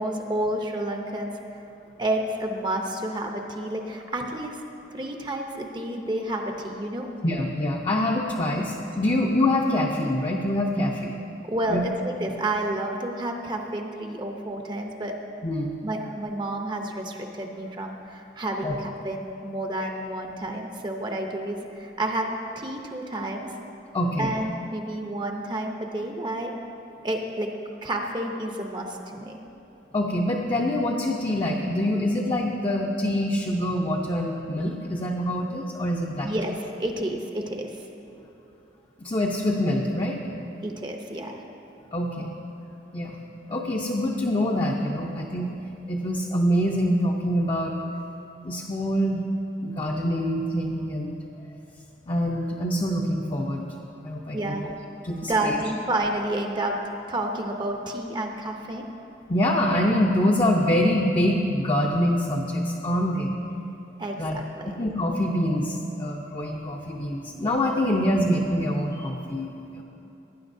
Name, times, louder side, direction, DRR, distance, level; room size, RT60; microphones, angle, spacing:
voice 1, 0.0-1.3 2.0-4.6 4.9-7.1 11.5-15.1 15.8-22.3 22.6-23.5 24.2-26.5 27.0-27.5 27.8-29.4 36.2-36.5 36.8-37.8 40.6-41.4 54.3-54.7 55.3-56.8 57.1-58.8 64.0-64.8, right 1 dB, 25° right, 3 dB, 0.7 m, -30 dB
voice 2, 7.2-11.2 11.7-11.8 15.4-15.8 18.6-18.8 19.8-19.9 23.9-24.3 29.9-36.3 39.0-40.2 41.9-42.3 42.9-43.2 43.5-45.5 45.9-47.8 48.4-49.2 49.6-51.2 52.1-53.8 54.0-54.7 55.0-55.6 59.3-63.3 64.2-64.4 64.8-69.8, left 1 dB, 30° left, -1 dB, 0.6 m, -25 dB
18.0 x 9.7 x 2.7 m, 2.9 s
head